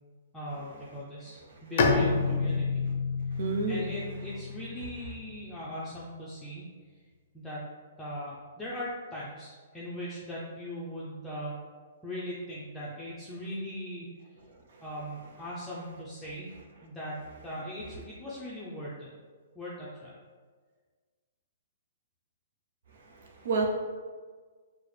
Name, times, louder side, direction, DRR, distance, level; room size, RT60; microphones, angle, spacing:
voice 1, 0.3-2.9 3.7-6.6 7.3-7.7 8.0-11.6 12.0-14.1 14.8-16.5 16.8-19.1 19.5-20.1, equal, 5° left, -9 dB, 0.6 m, -39 dB
Bowed string instrument, 1.8-5.4, left 4 dB, 55° left, 0.5 m, -29 dB
voice 2, 3.3-3.9 22.9-23.7, right 4 dB, 65° right, 0 dB, 0.5 m, -31 dB
4.6 x 2.0 x 3.2 m, 1.5 s
hypercardioid pair, 140°, 0 cm